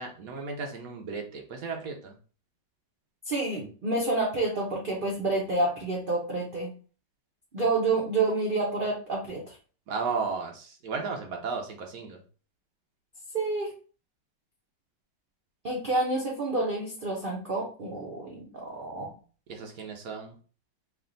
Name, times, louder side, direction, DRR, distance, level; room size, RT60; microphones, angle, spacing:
voice 1, 0.0-2.1 9.9-12.2 19.5-20.3, right 4 dB, 60° right, 2 dB, 1.0 m, -34 dB
voice 2, 3.3-6.7 7.5-9.5 13.3-13.7 15.6-19.1, right 2 dB, 85° right, -2 dB, 0.4 m, -29 dB
3.3 x 2.6 x 3.8 m, 0.40 s
omnidirectional pair, 2.0 m